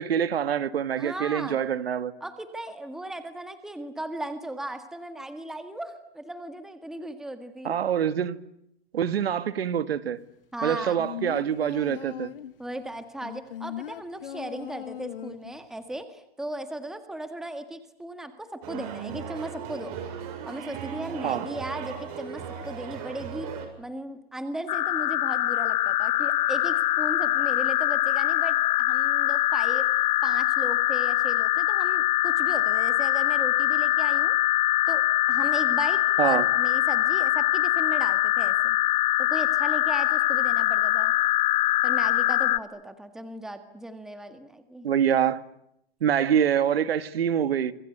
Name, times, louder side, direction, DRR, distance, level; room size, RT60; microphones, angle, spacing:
voice 1, 0.0-2.1 7.6-8.4 8.9-10.2 10.6-12.3 21.2-21.5 36.2-36.5 44.8-45.4 46.0-47.7, right 9 dB, 75° right, 2.1 m, -25 dB
voice 2, 1.0-1.6 2.2-7.8 10.5-11.0 12.6-20.0 20.5-23.5 23.8-29.9 30.2-34.4 34.9-38.8 39.2-41.1 41.8-44.9, right 1 dB, ahead, 1.8 m, -37 dB
sound 1, 10.7-12.6 13.2-15.6 15.9-16.0, left 11 dB, 65° left, 1.6 m, -38 dB
sound 2, 18.6-23.7, right 7 dB, 40° right, 7.4 m, -37 dB
sound 3, 24.7-42.6, left 15 dB, 45° left, 1.2 m, -23 dB
27.5 x 26.5 x 8.1 m
hypercardioid pair, 155°, 30 cm